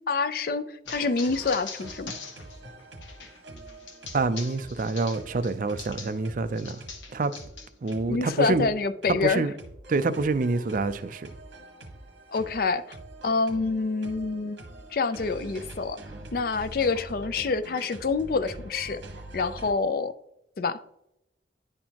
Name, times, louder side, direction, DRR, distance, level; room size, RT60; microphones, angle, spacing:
voice 1, 0.1-2.1 8.1-9.4 12.3-13.0 13.2-14.6 14.9-16.0 16.3-19.0 19.3-20.1 20.6-20.8, left 4 dB, 50° left, 0.4 m, -27 dB
sound 1, 0.9-6.2 6.6-8.0, left 5 dB, 80° left, 1.0 m, -42 dB
sound 2, 0.9-19.7, right 2 dB, 75° right, 1.1 m, -45 dB
voice 2, 4.1-6.8 7.1-7.3 7.8-8.7 9.1-9.5 9.9-11.3, right 3 dB, 45° right, 0.4 m, -26 dB
10.0 x 4.3 x 2.9 m
head